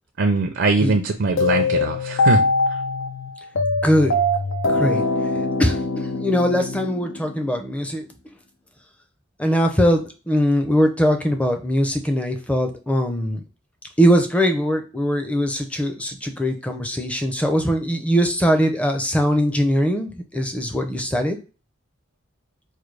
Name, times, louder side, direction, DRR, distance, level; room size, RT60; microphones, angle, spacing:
voice 1, 0.2-2.4, right 3 dB, 65° right, 4 dB, 0.5 m, -21 dB
sound 1, 1.4-7.5, left 2 dB, 90° left, 0.6 m, -22 dB
voice 2, 4.7-5.1 5.6-8.0 9.4-13.4 14.0-21.4, equal, 5° left, 4 dB, 0.5 m, -21 dB
4.8 x 2.2 x 3.2 m, 0.34 s
head